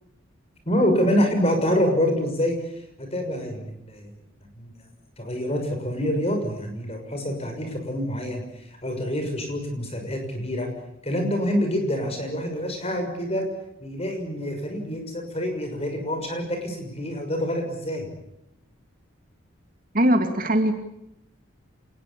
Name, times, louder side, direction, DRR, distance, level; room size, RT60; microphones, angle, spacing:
voice 1, 0.7-2.5 3.0-4.1 4.5-4.7 5.2-8.4 8.7-10.7 11.0-13.4 13.8-18.1, equal, 30° left, 5 dB, 6.3 m, -26 dB
voice 2, 19.9-20.7, right 1 dB, 45° right, 6 dB, 2.4 m, -20 dB
27.5 x 20.0 x 8.5 m, 0.84 s
head